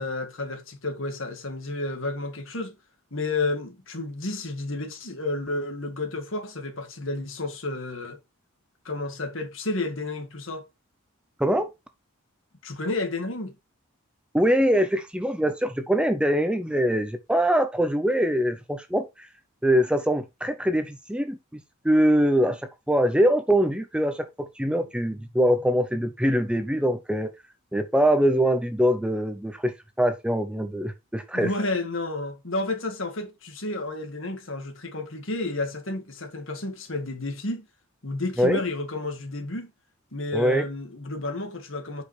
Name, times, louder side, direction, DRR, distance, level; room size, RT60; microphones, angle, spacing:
voice 1, 0.0-2.8 3.1-8.2 8.9-10.6 12.6-13.6 31.3-37.7 38.0-39.7 40.1-42.0, left 2 dB, 65° left, 1.8 m, -31 dB
voice 2, 14.3-19.3 19.6-21.4 21.8-22.6 22.9-27.3 27.7-31.5 38.4-38.6 40.3-40.6, equal, 5° right, 0.6 m, -23 dB
8.4 x 5.3 x 3.3 m
head